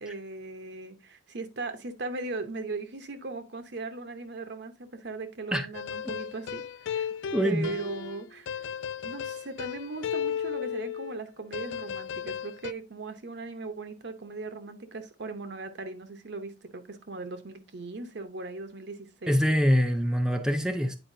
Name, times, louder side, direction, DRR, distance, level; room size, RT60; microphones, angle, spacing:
voice 1, 0.0-7.1 7.4-8.6 9.0-19.4, right 3 dB, 65° right, 0.9 m, -38 dB
sound 1, 5.7-11.2 11.5-12.7, left 8 dB, 85° left, 0.3 m, -35 dB
voice 2, 7.3-7.8 19.3-21.0, equal, 5° right, 0.5 m, -24 dB
9.1 x 4.5 x 2.6 m
head